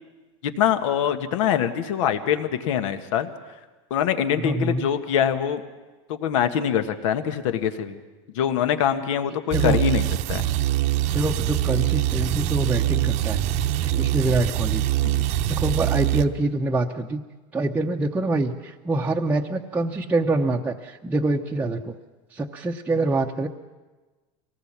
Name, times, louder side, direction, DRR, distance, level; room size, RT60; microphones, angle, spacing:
voice 1, 0.4-3.3 3.9-5.6 6.1-8.0 8.3-10.4 15.0-15.3, left 9 dB, 80° left, 8 dB, 1.7 m, -24 dB
voice 2, 4.4-4.8 9.5-9.8 11.1-13.4 13.8-14.8 15.5-17.2 17.5-22.0 22.3-23.5, right 2 dB, 10° right, 0 dB, 0.8 m, -25 dB
sound 1, 9.5-16.2, right 13 dB, 45° right, 0.9 m, -23 dB
24.0 x 18.0 x 7.5 m, 1.2 s
supercardioid pair, 145°, 16 cm